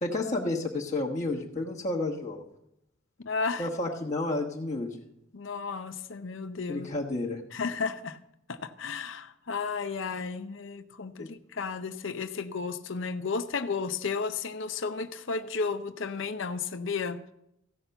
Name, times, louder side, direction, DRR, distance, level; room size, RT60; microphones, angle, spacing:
voice 1, 0.0-2.5 3.6-5.0 6.7-7.4 11.2-11.3, left 2 dB, 35° left, -2 dB, 1.2 m, -31 dB
voice 2, 3.2-3.7 5.3-6.9 7.5-8.2 8.5-17.2, left 4 dB, 65° left, 9 dB, 0.7 m, -33 dB
15.5 x 5.9 x 6.8 m, 0.81 s
head